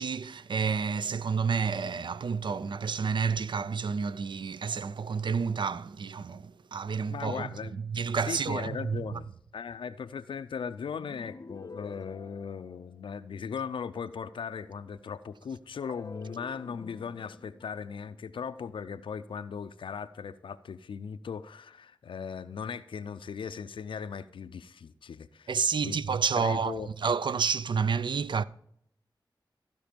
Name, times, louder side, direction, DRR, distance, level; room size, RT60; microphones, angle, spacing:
voice 1, 0.0-7.5 7.8-9.2 25.5-28.4, right 5 dB, 70° right, 0.4 m, -30 dB
voice 2, 7.1-7.8 8.2-26.0 26.4-26.9, left 6 dB, 90° left, 0.4 m, -38 dB
sound 1, 10.9-13.3 15.7-19.1, left 4 dB, 45° left, 0.6 m, -48 dB
15.0 x 5.2 x 5.1 m
cardioid pair, 55°, 8 cm